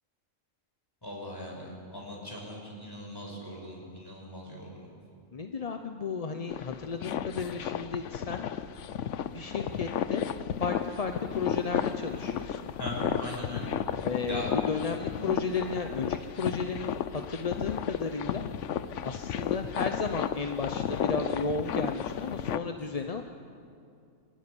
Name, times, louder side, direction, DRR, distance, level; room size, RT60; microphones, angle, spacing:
voice 1, 1.0-4.9 12.8-13.7 14.3-14.5, left 1 dB, 15° left, -2 dB, 5.9 m, -39 dB
voice 2, 5.3-8.5 9.3-10.2 10.6-12.7 14.0-18.4 19.0-23.2, left 4 dB, 35° left, 6 dB, 0.7 m, -34 dB
sound 1, 6.5-22.6, left 9 dB, 65° left, 1.0 m, -33 dB
24.5 x 15.0 x 9.9 m, 2.5 s
omnidirectional pair, 1.4 m